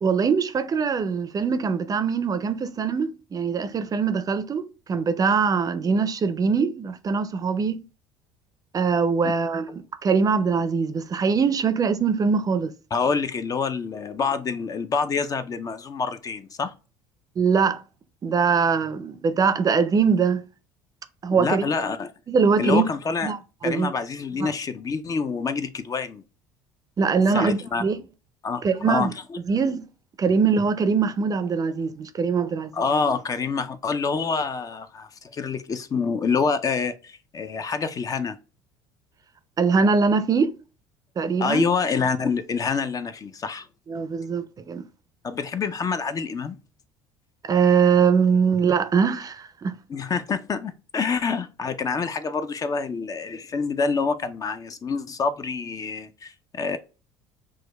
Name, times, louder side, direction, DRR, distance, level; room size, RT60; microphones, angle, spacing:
voice 1, 0.0-4.6 4.9-7.8 8.7-12.7 17.4-17.8 18.2-20.4 21.2-21.6 22.3-22.8 23.2-23.9 24.4-24.5 27.0-28.0 28.6-29.1 29.5-29.9 30.2-32.7 39.6-40.5 41.2-41.6 43.9-44.8 47.4-49.7, right 5 dB, 30° right, 0.5 m, -22 dB
voice 2, 12.9-16.7 21.4-22.1 22.6-23.4 23.6-26.2 27.3-27.8 28.4-29.1 32.7-38.4 41.4-43.7 45.2-46.6 49.9-56.8, left 5 dB, 30° left, 0.4 m, -27 dB
6.0 x 2.2 x 2.2 m
hypercardioid pair, 70°, 11 cm